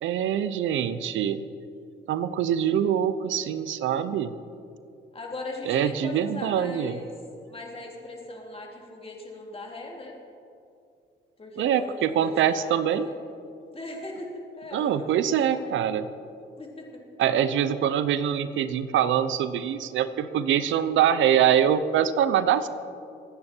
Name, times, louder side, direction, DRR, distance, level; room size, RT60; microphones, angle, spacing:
voice 1, 0.0-1.4 2.1-4.3 5.7-7.0 11.6-13.1 14.7-16.1 17.2-22.7, right 9 dB, 75° right, 13 dB, 0.7 m, -24 dB
voice 2, 5.1-7.1 7.4-10.2 11.4-13.2 13.7-15.8 16.6-17.0, left 2 dB, 30° left, -1 dB, 3.4 m, -39 dB
24.5 x 9.8 x 4.5 m, 2.4 s
cardioid pair, 90°, 20 cm